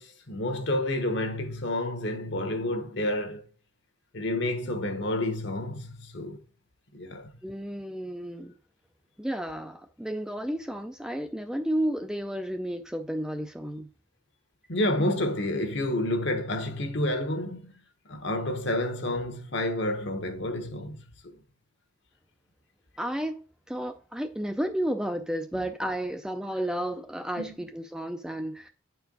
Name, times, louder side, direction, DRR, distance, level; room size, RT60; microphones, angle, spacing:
voice 1, 0.0-3.4 4.1-6.4 6.9-7.3 14.7-17.7 18.1-21.0 27.4-27.5, left 1 dB, 60° left, 1.2 m, -29 dB
voice 2, 7.4-8.5 9.2-13.9 23.0-28.7, right 1 dB, 5° right, 0.4 m, -32 dB
9.3 x 4.5 x 3.9 m
head